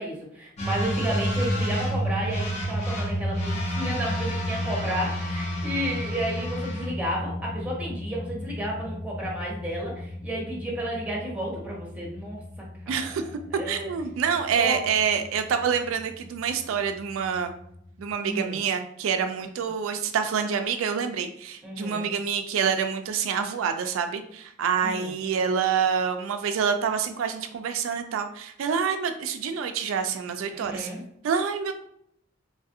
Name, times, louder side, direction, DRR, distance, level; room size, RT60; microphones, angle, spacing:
voice 1, 0.0-12.4 12.9-13.1 13.5-13.9 14.5-14.8 18.2-18.6 21.6-22.1 24.8-25.1 30.5-31.0, right 1 dB, 10° right, -3 dB, 0.9 m, -32 dB
sound 1, 0.6-18.0, equal, 35° left, 0.7 m, -32 dB
voice 2, 12.9-13.2 13.7-17.5 18.0-30.9 31.2-31.7, right 7 dB, 90° right, 8 dB, 0.3 m, -27 dB
3.2 x 2.4 x 2.6 m, 0.72 s
head